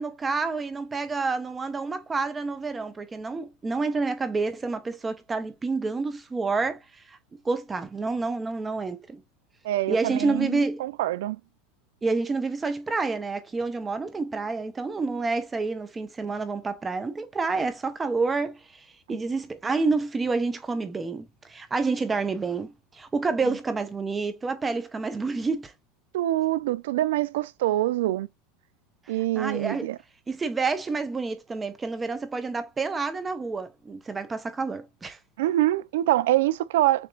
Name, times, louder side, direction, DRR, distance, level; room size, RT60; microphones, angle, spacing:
voice 1, 0.0-6.8 7.1-7.2 7.4-9.2 9.9-10.8 12.0-25.7 29.3-29.9 30.3-35.2, right 4 dB, 15° right, 0.8 m, -28 dB
voice 2, 9.6-11.4 19.1-19.2 23.4-23.6 26.1-28.3 29.1-30.0 35.4-37.1, right 15 dB, 85° right, 0.5 m, -25 dB
6.9 x 2.9 x 2.4 m
supercardioid pair, 145°, 0 cm